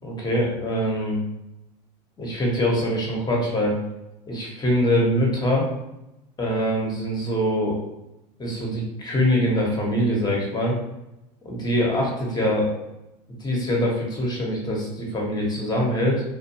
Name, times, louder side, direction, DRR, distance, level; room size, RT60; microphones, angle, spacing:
voice 1, 0.0-1.2 2.2-3.8 4.2-5.7 6.4-7.8 8.4-10.8 11.4-12.8 13.4-16.2, equal, 20° left, -2 dB, 0.9 m, -23 dB
2.5 x 2.2 x 2.8 m, 0.92 s
supercardioid pair, 100°, 21 cm